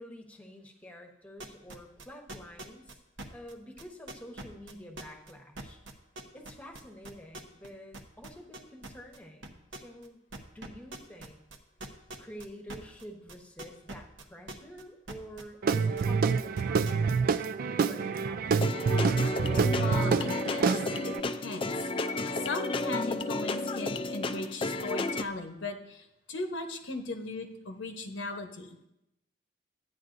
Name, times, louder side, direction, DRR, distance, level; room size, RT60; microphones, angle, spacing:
voice 1, 0.0-2.9 3.3-5.8 6.3-10.2 10.5-11.4 12.2-17.5 17.8-18.6, equal, 10° left, 2 dB, 1.0 m, -48 dB
sound 1, 1.4-7.7 7.9-9.2 9.4-10.1 10.3-14.8 15.1-17.2, right 2 dB, 80° right, 0.9 m, -43 dB
Guitar / Drum, 15.6-21.2, right 5 dB, 50° right, 0.3 m, -27 dB
sound 2, 18.5-25.2, left 2 dB, 30° left, 0.4 m, -32 dB
voice 2, 19.8-20.7 21.2-21.9 22.3-28.8, left 3 dB, 80° left, 4 dB, 0.9 m, -38 dB
12.0 x 9.4 x 2.6 m, 0.85 s
head